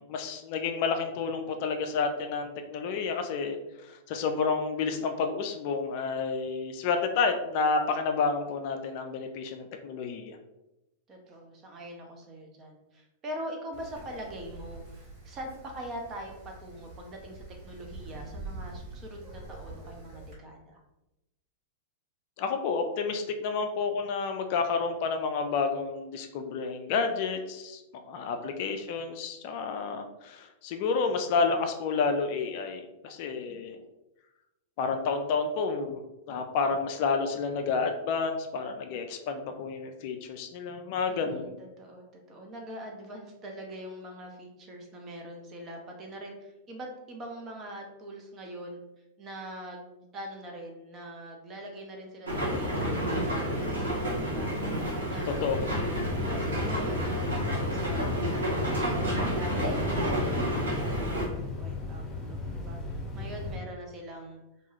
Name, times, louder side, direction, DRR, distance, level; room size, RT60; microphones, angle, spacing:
voice 1, 0.0-3.6 3.8-10.4 22.4-33.8 34.8-36.0 36.3-41.6 55.4-55.6, left 4 dB, 50° left, 5 dB, 0.3 m, -30 dB
voice 2, 11.1-20.8 28.2-28.6 41.1-48.8 49.2-54.5 55.1-55.5 56.1-59.1 59.3-64.4, right 1 dB, 30° right, 1 dB, 0.7 m, -43 dB
Wind, 13.7-20.3, right 2 dB, 45° right, 1.4 m, -45 dB
sound 1, 52.3-61.3, equal, 80° right, 0.9 m, -30 dB
sound 2, 55.3-63.6, left 3 dB, 15° left, 0.9 m, -36 dB
2.6 x 2.3 x 2.9 m, 0.94 s
figure-of-eight pair, 95°, 0 cm